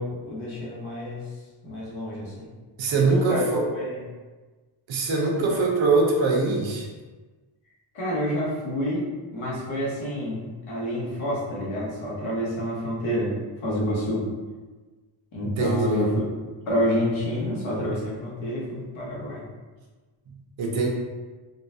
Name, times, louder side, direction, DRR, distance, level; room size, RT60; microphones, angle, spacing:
voice 1, 0.0-1.3 1.6-2.5 2.9-3.4 3.7-4.0 5.4-5.6 7.9-13.4 13.6-14.3 15.3-16.2 16.7-19.4, equal, 75° left, -6 dB, 1.2 m, -28 dB
voice 2, 2.8-3.7 4.9-6.9 15.4-16.1 20.6-20.9, right 3 dB, 70° right, -1 dB, 0.8 m, -23 dB
3.8 x 2.3 x 2.6 m, 1.3 s
cardioid pair, 105°, 49 cm